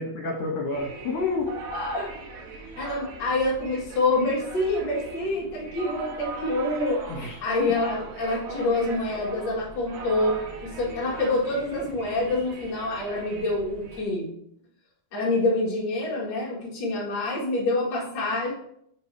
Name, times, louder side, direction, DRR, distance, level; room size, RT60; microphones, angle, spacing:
voice 1, 0.0-1.5 7.1-7.7, left 3 dB, 65° left, 0 dB, 2.9 m, -29 dB
sound 1, 0.7-14.0, right 3 dB, 75° right, 2.7 m, -40 dB
voice 2, 1.7-2.2 2.8-7.1 7.4-14.3 15.1-18.5, left 2 dB, 40° left, -5 dB, 1.8 m, -26 dB
7.5 x 3.7 x 4.7 m, 0.70 s
omnidirectional pair, 4.5 m